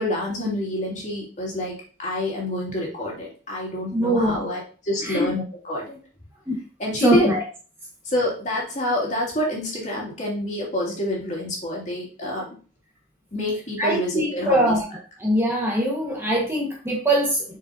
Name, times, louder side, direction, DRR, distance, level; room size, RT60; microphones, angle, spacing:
voice 1, 0.0-1.7 2.0-6.0 6.8-7.4 8.0-12.5 13.3-14.8, left 1 dB, 35° left, -3 dB, 2.6 m, -27 dB
voice 2, 3.9-4.4 5.0-5.3 6.5-6.6 7.0-7.4 13.8-14.8 15.2-17.4, right 1 dB, 10° right, -3 dB, 1.5 m, -22 dB
6.6 x 6.4 x 2.8 m, 0.37 s
head